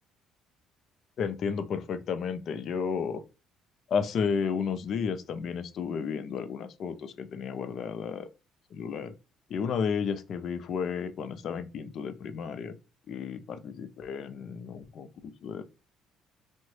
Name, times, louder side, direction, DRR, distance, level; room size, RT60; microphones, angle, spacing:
voice 1, 1.2-3.2 3.9-8.3 8.7-9.1 9.5-12.8 13.1-15.6, left 6 dB, 50° left, 0.4 m, -32 dB
3.7 x 2.1 x 3.1 m
cardioid pair, 125°, 0 cm